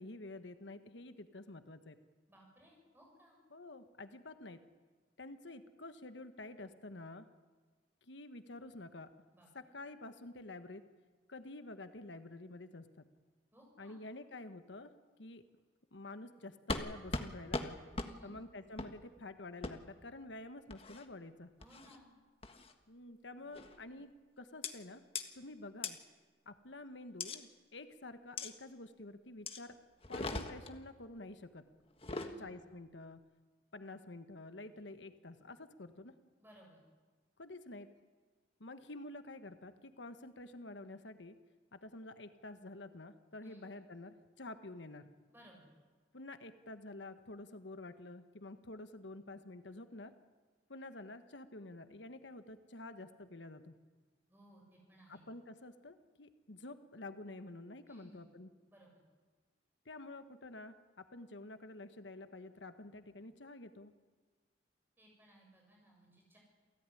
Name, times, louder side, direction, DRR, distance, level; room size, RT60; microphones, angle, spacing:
voice 1, 0.0-2.0 3.5-4.6 5.2-7.2 8.0-9.1 9.5-10.8 11.3-13.1 13.8-14.9 15.2-15.4 15.9-17.8 18.2-21.5 22.9-25.0 25.3-26.0 26.4-29.7 30.1-31.7 32.1-33.2 33.7-36.1 37.4-37.9 38.6-41.3 41.7-45.1 46.1-50.1 50.7-53.8 55.1-58.5 59.8-63.9, left 2 dB, 80° left, 10 dB, 1.3 m, -49 dB
voice 2, 2.3-3.4 9.3-9.8 13.5-14.0 18.0-18.3 21.6-22.2 32.0-32.5 36.4-36.8 43.4-43.6 45.3-45.7 54.3-55.2 57.9-58.3 58.7-58.9 65.0-66.4, equal, 10° right, -1 dB, 7.7 m, -61 dB
sound 1, 16.7-16.9 17.1-17.3 17.5-17.7 18.0-18.1 18.8-18.9 19.6-19.7 20.7-21.0 21.6-22.0 22.4-22.7 23.5-23.8 24.6-24.7 25.1-25.2 25.8-25.9 27.2-27.4 28.4-28.5 29.5-29.6 30.0-30.7 31.9-32.3, left 3 dB, 30° left, 1.5 m, -39 dB
28.5 x 16.0 x 9.9 m, 1.4 s
head